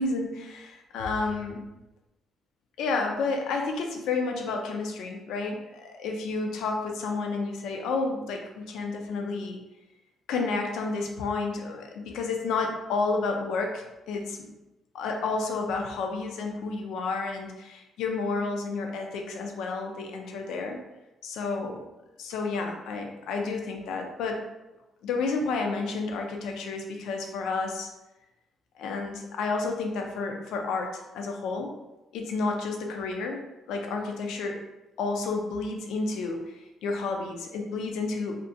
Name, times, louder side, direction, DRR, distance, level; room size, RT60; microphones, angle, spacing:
voice 1, 0.0-1.6 2.8-9.6 10.3-14.5 14.9-20.8 21.2-21.9 22.2-24.4 25.0-27.9 28.8-31.7 32.1-33.4 33.7-34.6 35.0-38.4, left 3 dB, 85° left, 3 dB, 0.3 m, -31 dB
2.4 x 2.1 x 2.6 m, 0.99 s
cardioid pair, 90°, 0 cm